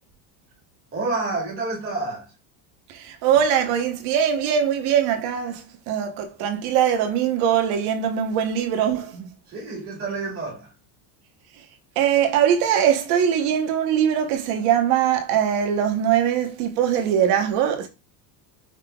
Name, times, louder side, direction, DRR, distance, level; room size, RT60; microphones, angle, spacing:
voice 1, 0.9-2.3 9.5-10.7, right 3 dB, 25° right, 2.0 m, -29 dB
voice 2, 2.9-9.3 12.0-17.9, right 9 dB, 50° right, 1.0 m, -21 dB
5.4 x 3.6 x 2.3 m
cardioid pair, 170°, 48 cm